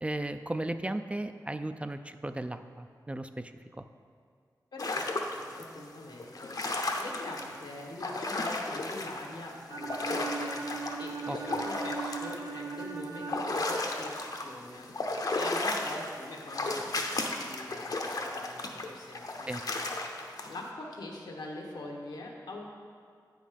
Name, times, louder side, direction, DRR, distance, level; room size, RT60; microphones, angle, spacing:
voice 1, 0.0-3.8 11.3-11.4 19.5-19.6, right 1 dB, 15° right, 9 dB, 0.3 m, -36 dB
voice 2, 4.7-5.1 5.6-10.6 11.0-19.7 20.5-22.7, left 2 dB, 90° left, -1 dB, 1.2 m, -44 dB
sound 1, 4.8-5.6 6.2-9.3 9.5-14.5 14.8-20.5, left 2 dB, 60° left, 0.7 m, -34 dB
Bowed string instrument, 9.7-13.7, right 4 dB, 55° right, 0.8 m, -38 dB
8.7 x 5.2 x 5.1 m, 2.1 s
wide cardioid pair, 75°, 7 cm